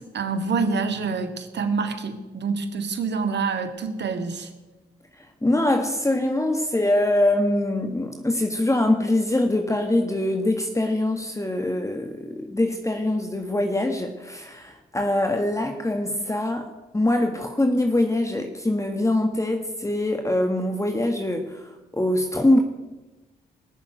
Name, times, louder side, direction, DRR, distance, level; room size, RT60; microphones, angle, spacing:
voice 1, 0.0-4.5, right 4 dB, 65° right, 7 dB, 2.1 m, -27 dB
voice 2, 5.4-22.6, left 1 dB, 15° left, 4 dB, 1.8 m, -23 dB
20.5 x 7.1 x 9.1 m, 1.1 s
supercardioid pair, 45°, 19 cm